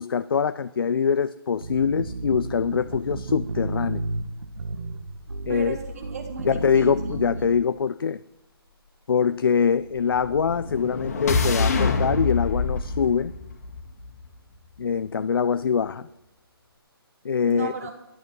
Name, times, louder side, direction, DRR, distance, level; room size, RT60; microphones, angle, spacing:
voice 1, 0.0-4.0 5.5-5.8 6.5-8.2 9.1-13.3 14.8-16.1 17.2-17.7, left 6 dB, 65° left, 14 dB, 0.4 m, -23 dB
sound 1, 1.6-7.6, right 2 dB, 80° right, 1.5 m, -32 dB
voice 2, 5.5-6.9 7.4-7.6 17.5-17.9, right 6 dB, 40° right, 3 dB, 1.3 m, -35 dB
sound 2, 10.1-14.3, left 3 dB, 40° left, 1.8 m, -26 dB
12.0 x 11.0 x 6.0 m, 0.94 s
hypercardioid pair, 170°, 13 cm